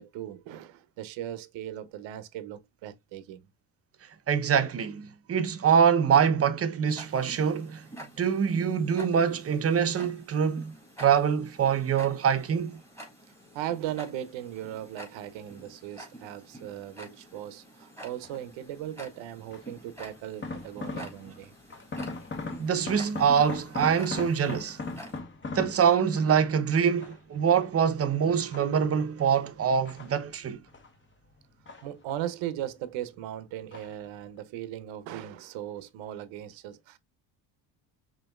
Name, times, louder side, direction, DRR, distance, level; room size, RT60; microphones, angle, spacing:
voice 1, 0.0-3.4 13.5-21.5 31.8-37.0, right 12 dB, 75° right, 0.8 m, -38 dB
voice 2, 4.3-7.8 8.2-12.8 22.6-24.8 25.5-30.6, right 7 dB, 30° right, 0.7 m, -24 dB
Tick-tock, 6.9-25.2, right 1 dB, 5° left, 1.8 m, -48 dB
sound 1, 18.2-18.6 19.5-21.4 21.7-26.5 27.0-27.9 28.3-29.1 29.6-31.0 31.2-32.4 32.7-33.3 33.7-34.1 34.4-34.5, left 3 dB, 25° left, 1.1 m, -40 dB
5.3 x 2.9 x 2.3 m
supercardioid pair, 95°, 46 cm